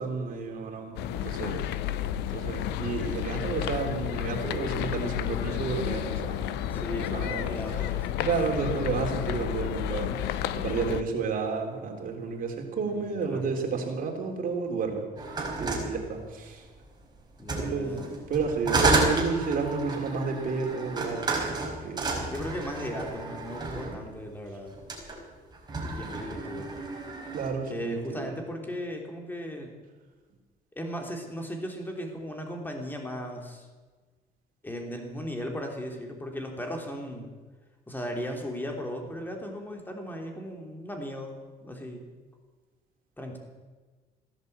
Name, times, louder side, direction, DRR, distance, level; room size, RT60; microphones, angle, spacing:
voice 1, 0.0-1.6 2.3-7.5 8.2-15.0 15.6-16.6 17.5-22.2 27.3-28.3, right 5 dB, 55° right, 3 dB, 3.4 m, -31 dB
sound 1, 1.0-11.0, left 12 dB, 90° left, 0.8 m, -31 dB
voice 2, 6.7-8.3 10.8-11.1 12.8-13.5 17.4-18.1 22.1-24.8 25.8-26.7 27.6-29.8 30.7-33.7 34.6-37.3 37.9-42.1 43.2-43.4, equal, 10° left, 2 dB, 3.4 m, -37 dB
sound 2, 15.2-16.7 17.4-24.0 24.7-25.2 25.5-27.5, right 3 dB, 25° right, 4.8 m, -31 dB
16.0 x 10.5 x 8.1 m, 1.3 s
cardioid pair, 110°, 17 cm